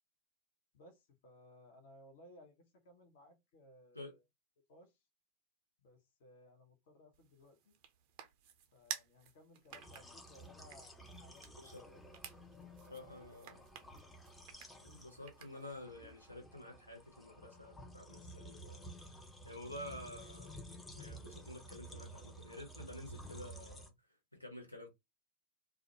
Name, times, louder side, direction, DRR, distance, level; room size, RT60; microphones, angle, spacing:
voice 1, 0.7-4.2 4.7-5.0 5.8-7.8 8.7-12.2, left 1 dB, 55° left, 0.8 m, -61 dB
sound 1, 7.1-15.8, right 9 dB, 45° right, 0.5 m, -53 dB
sound 2, 9.7-23.9, right 1 dB, 10° left, 0.5 m, -53 dB
voice 2, 12.9-13.6 14.5-19.2 19.4-23.9 24.4-24.9, left 1 dB, 90° left, 0.7 m, -50 dB
2.3 x 2.1 x 2.8 m
figure-of-eight pair, 90°, 0 cm